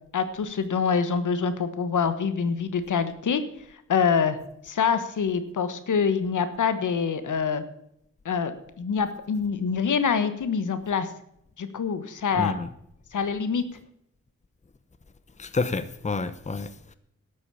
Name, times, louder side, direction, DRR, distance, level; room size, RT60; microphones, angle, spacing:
voice 1, 0.1-3.4 3.9-4.4 4.6-7.6 8.2-8.5 8.8-11.1 11.6-12.6 13.1-13.6, left 6 dB, 80° left, 1.4 m, -25 dB
voice 2, 12.4-12.7 15.4-16.9, left 3 dB, 25° left, 0.9 m, -29 dB
12.5 x 8.3 x 6.9 m
wide cardioid pair, 90°, 30 cm